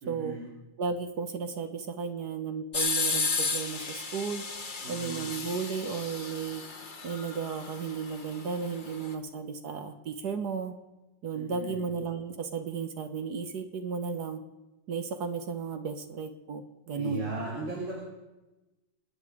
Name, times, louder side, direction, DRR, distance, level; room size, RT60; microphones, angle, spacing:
voice 1, 0.0-0.4 4.8-5.2 11.3-11.8 16.9-17.9, right 2 dB, 85° right, -6 dB, 4.6 m, -37 dB
voice 2, 0.8-4.4 4.9-6.6 7.0-10.7 11.2-14.4 14.9-17.3, right 5 dB, 60° right, 7 dB, 1.6 m, -34 dB
sound 1, 2.7-9.1, left 4 dB, 30° left, 1.1 m, -34 dB
27.0 x 9.9 x 4.9 m, 1.0 s
omnidirectional pair, 2.2 m